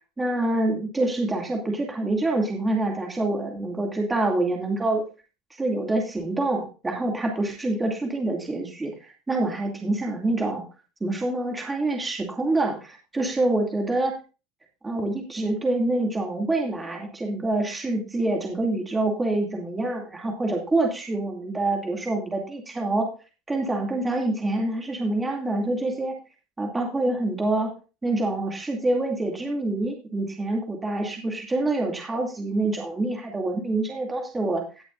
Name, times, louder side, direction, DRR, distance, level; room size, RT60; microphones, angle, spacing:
voice 1, 0.2-5.0 5.6-8.9 9.3-10.6 11.0-14.1 14.8-23.1 23.5-26.2 26.6-27.7 28.0-34.6, right 2 dB, 15° right, 1 dB, 2.5 m, -26 dB
18.0 x 6.8 x 2.6 m, 0.32 s
supercardioid pair, 100°, 0 cm